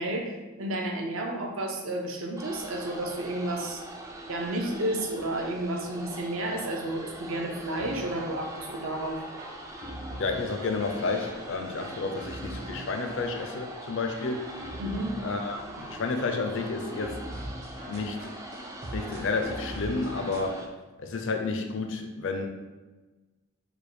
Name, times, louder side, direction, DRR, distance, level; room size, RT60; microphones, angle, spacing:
voice 1, 0.0-3.8 4.3-9.2 14.8-15.1, right 1 dB, 65° right, 2 dB, 0.7 m, -31 dB
sound 1, 2.4-20.7, right 1 dB, 15° right, 0.3 m, -43 dB
sound 2, 7.8-20.5, equal, 50° right, 1.0 m, -42 dB
voice 2, 10.2-14.5 15.2-17.2 17.9-18.3 18.9-20.7 21.0-22.5, left 3 dB, 60° left, 4 dB, 0.5 m, -31 dB
5.0 x 2.2 x 4.9 m, 1.2 s
head